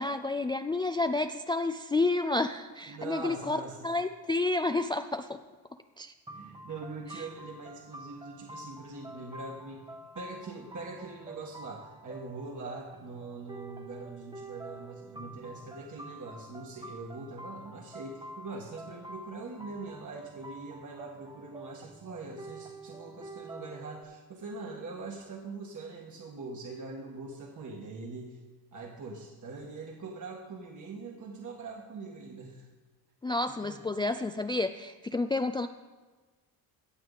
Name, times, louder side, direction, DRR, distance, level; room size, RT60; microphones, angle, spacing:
voice 1, 0.0-3.6 3.8-5.4 6.0-6.1 7.1-7.2 33.2-35.7, left 2 dB, 10° left, 7 dB, 0.3 m, -30 dB
voice 2, 2.9-3.9 6.3-9.8 10.1-28.4 28.7-32.7 33.5-33.8, right 3 dB, 45° right, -1 dB, 1.6 m, -42 dB
sound 1, 6.3-24.0, right 1 dB, 10° right, 0.9 m, -47 dB
17.0 x 7.0 x 4.0 m, 1.3 s
cardioid pair, 90°, 41 cm